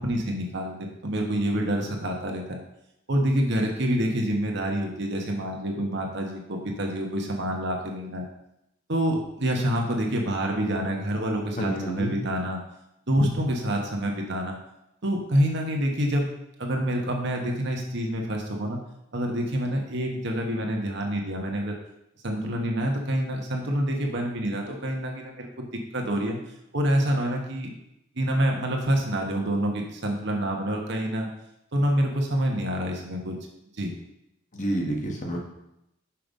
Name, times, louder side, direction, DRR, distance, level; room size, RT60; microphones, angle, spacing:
voice 1, 0.0-2.6 3.1-8.3 8.9-12.6 13.1-14.5 15.0-16.3 16.6-18.8 19.1-21.7 22.2-25.7 25.9-26.4 26.7-27.7 28.1-31.3 31.7-33.3 33.8-33.9, equal, 60° right, 1 dB, 1.2 m, -27 dB
voice 2, 11.6-12.1 34.5-35.4, right 1 dB, 40° left, 0 dB, 1.2 m, -29 dB
5.8 x 5.0 x 5.3 m, 0.84 s
head